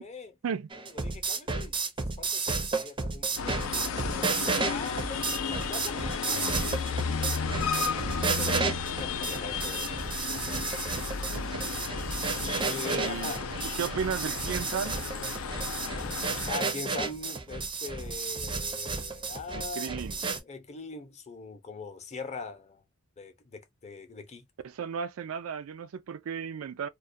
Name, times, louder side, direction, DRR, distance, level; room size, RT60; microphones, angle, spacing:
voice 1, 0.0-0.3 0.9-6.7 7.4-9.9 12.6-13.6 16.5-22.8 23.2-24.5, left 4 dB, 30° left, 0.6 m, -42 dB
sound 1, 0.7-20.4, right 4 dB, 25° right, 0.5 m, -32 dB
sound 2, 3.4-16.5, left 5 dB, 75° left, 0.4 m, -33 dB
voice 2, 11.3-11.7 12.8-13.3 13.8-15.0 19.5-20.1 24.6-26.9, right 6 dB, 85° right, 0.4 m, -34 dB
2.3 x 2.1 x 2.5 m
head